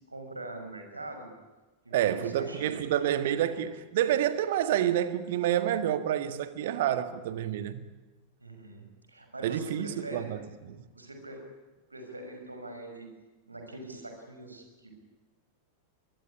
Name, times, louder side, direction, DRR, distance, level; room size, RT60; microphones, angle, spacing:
voice 1, 0.1-1.3 1.8-2.8 8.4-10.3 10.6-11.4 11.9-13.1 13.5-14.9, right 1 dB, 80° right, 5.9 m, -43 dB
voice 2, 1.9-7.9 9.4-10.8, right 11 dB, 55° right, 1.8 m, -28 dB
23.0 x 22.0 x 9.9 m
figure-of-eight pair, 90°, 0 cm